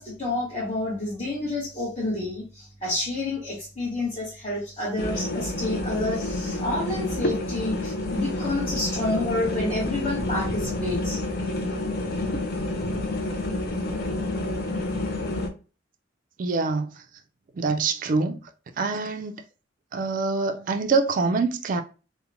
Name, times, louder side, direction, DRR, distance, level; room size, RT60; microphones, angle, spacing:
voice 1, 0.0-11.2, left 2 dB, 30° left, 1.1 m, -29 dB
sound 1, 5.0-15.5, left 2 dB, 55° left, 0.4 m, -29 dB
voice 2, 16.4-16.9 17.6-18.4 18.8-19.3 19.9-21.8, right 4 dB, 45° right, 0.3 m, -25 dB
2.9 x 2.1 x 2.5 m
head